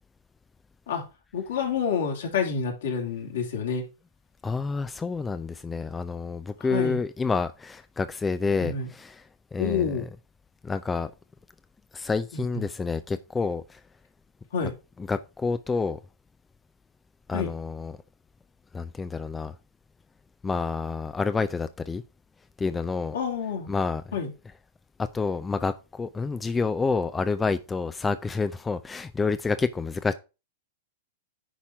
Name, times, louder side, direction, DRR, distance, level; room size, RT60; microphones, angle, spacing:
voice 1, 1.3-3.8 6.6-7.0 8.6-8.9 9.6-10.1 12.3-12.7 14.5-14.7 17.3-17.5 23.1-23.7 24.1-24.3, left 6 dB, 70° left, 3.0 m, -28 dB
voice 2, 4.4-9.2 9.5-9.9 10.6-11.1 11.9-13.8 15.1-16.0 17.3-18.0 18.7-19.5 20.4-22.0 22.6-23.1 23.7-24.0 25.0-30.1, left 4 dB, 15° left, 0.5 m, -28 dB
10.0 x 4.3 x 4.7 m
hypercardioid pair, 110°, 0 cm